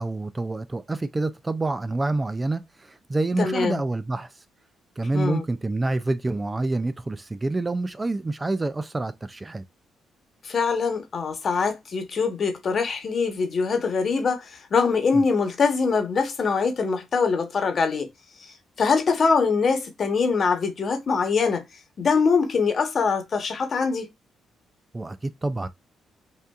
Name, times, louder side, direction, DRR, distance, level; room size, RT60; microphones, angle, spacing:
voice 1, 0.0-4.4 5.0-9.6 15.1-15.2 24.9-25.7, right 2 dB, 20° right, 0.3 m, -27 dB
voice 2, 3.4-3.8 5.1-5.4 10.4-18.1 18.4-21.6 22.0-24.1, left 5 dB, 50° left, 1.1 m, -23 dB
5.2 x 2.5 x 2.4 m
cardioid pair, 90°, 0 cm